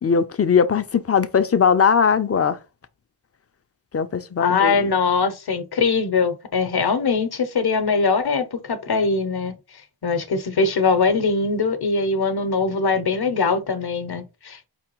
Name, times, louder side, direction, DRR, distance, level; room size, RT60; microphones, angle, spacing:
voice 1, 0.0-2.6 3.9-4.9, left 6 dB, 35° left, 0.5 m, -19 dB
voice 2, 4.4-9.5 10.0-14.7, left 4 dB, 55° left, 0.8 m, -22 dB
4.6 x 3.4 x 3.0 m
wide cardioid pair, 85°, 45 cm